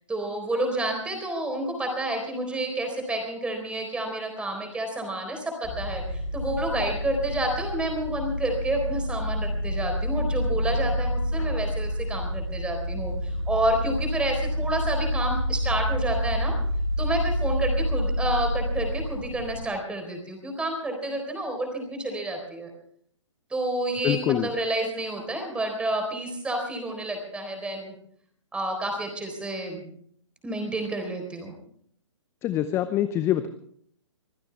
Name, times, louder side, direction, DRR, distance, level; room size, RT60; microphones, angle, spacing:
voice 1, 0.1-16.5 17.0-22.7 23.5-27.9 28.5-29.8 30.4-31.5, right 1 dB, 5° right, 4 dB, 4.0 m, -29 dB
sound 1, 5.6-19.7, left 1 dB, 50° left, 4.4 m, -28 dB
voice 2, 24.0-24.5 32.4-33.5, left 12 dB, 15° left, 12 dB, 0.6 m, -24 dB
24.5 x 15.5 x 3.4 m, 0.63 s
figure-of-eight pair, 125°, 16 cm